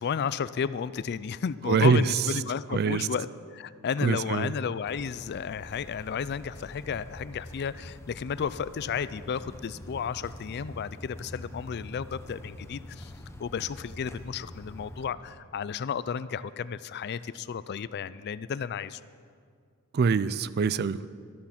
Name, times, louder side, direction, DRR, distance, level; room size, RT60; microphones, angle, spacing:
voice 1, 0.0-3.3 3.5-13.1 13.4-19.0, left 7 dB, 45° left, 16 dB, 0.4 m, -33 dB
voice 2, 1.7-2.2 2.7-3.1 4.0-4.5 19.9-21.1, right 5 dB, 45° right, 16 dB, 0.4 m, -24 dB
sound 1, 4.9-15.1, left 1 dB, 10° left, 0.9 m, -45 dB
13.0 x 13.0 x 5.8 m, 2.2 s
head